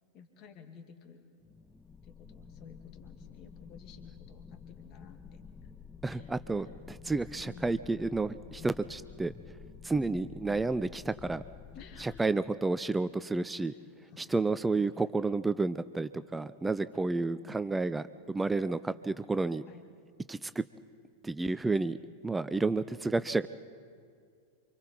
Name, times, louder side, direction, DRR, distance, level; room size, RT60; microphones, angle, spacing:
voice 1, 0.1-1.2 2.0-5.7 6.0-6.8 7.4-7.7 9.9-10.3 11.7-12.3 13.6-14.4 14.7-15.0 16.6-17.6 19.7-19.8, left 6 dB, 40° left, 5 dB, 2.3 m, -54 dB
sound 1, 1.4-12.2, left 6 dB, 10° left, 0.8 m, -50 dB
voice 2, 6.0-9.3 9.8-11.4 12.0-13.7 14.2-19.6 20.3-20.6 21.2-22.0 22.2-23.5, right 3 dB, 10° right, 14 dB, 0.5 m, -31 dB
28.5 x 25.5 x 4.5 m, 2.2 s
figure-of-eight pair, 90°, 0 cm